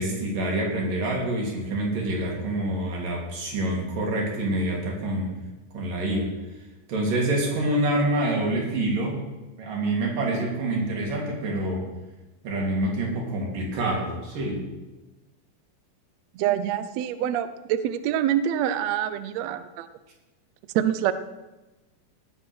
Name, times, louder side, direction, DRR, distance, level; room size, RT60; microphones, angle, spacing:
voice 1, 0.0-5.3 5.7-6.3 6.9-9.2 9.6-11.9 12.4-14.6, right 1 dB, 70° right, -1 dB, 4.6 m, -26 dB
voice 2, 16.3-19.9 20.7-21.1, right 10 dB, 85° right, 12 dB, 1.5 m, -25 dB
18.0 x 7.7 x 6.2 m, 1.1 s
omnidirectional pair, 4.0 m